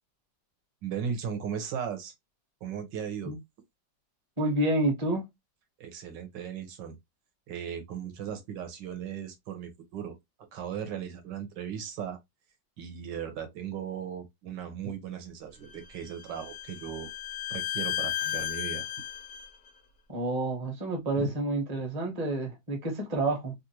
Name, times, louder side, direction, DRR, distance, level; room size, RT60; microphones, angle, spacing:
voice 1, 0.8-2.1 2.6-3.4 5.8-7.0 7.5-10.2 10.5-12.2 12.8-17.1 17.5-18.9 21.2-21.3, right 8 dB, 75° right, 1.5 m, -37 dB
voice 2, 4.4-5.2 20.1-23.5, right 2 dB, 25° right, 0.9 m, -29 dB
Bowed string instrument, 15.7-19.5, left 12 dB, 75° left, 0.7 m, -34 dB
3.4 x 2.4 x 2.7 m
omnidirectional pair, 2.0 m